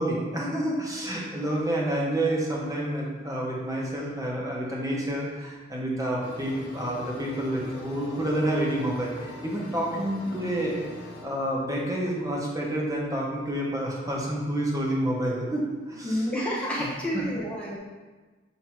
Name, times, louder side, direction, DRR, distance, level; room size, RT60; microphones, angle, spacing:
voice 1, 0.0-10.8 11.2-16.3 16.8-16.9 17.1-17.2, right 1 dB, 20° right, -3 dB, 1.1 m, -29 dB
sound 1, 6.2-11.2, left 1 dB, 85° left, 1.4 m, -42 dB
voice 2, 16.0-17.8, equal, 5° left, -6 dB, 0.9 m, -29 dB
7.4 x 2.8 x 4.5 m, 1.3 s
head